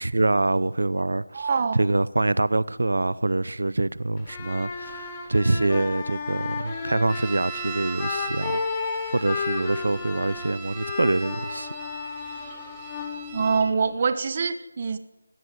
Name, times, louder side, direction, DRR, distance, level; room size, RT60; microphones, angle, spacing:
voice 1, 0.0-8.7 9.1-11.9, right 2 dB, 75° right, 0.7 m, -25 dB
voice 2, 1.3-1.8 13.3-15.0, right 5 dB, 30° right, 1.3 m, -24 dB
sound 1, 4.2-14.0, left 4 dB, 15° left, 2.4 m, -33 dB
sound 2, 7.1-13.7, right 5 dB, 10° right, 3.0 m, -39 dB
19.0 x 17.0 x 9.3 m
figure-of-eight pair, 175°, 0 cm